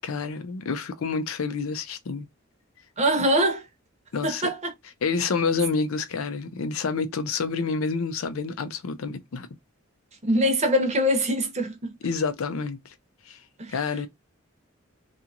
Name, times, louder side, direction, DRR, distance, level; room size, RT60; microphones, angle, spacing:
voice 1, 0.0-2.3 4.1-4.4 5.0-9.5 12.0-12.8 13.3-13.4 13.7-14.1, left 4 dB, 80° left, 0.5 m, -28 dB
voice 2, 3.0-3.6 4.2-4.7 10.2-11.9 13.6-13.7, equal, 35° right, 0.8 m, -23 dB
2.8 x 2.4 x 2.4 m
head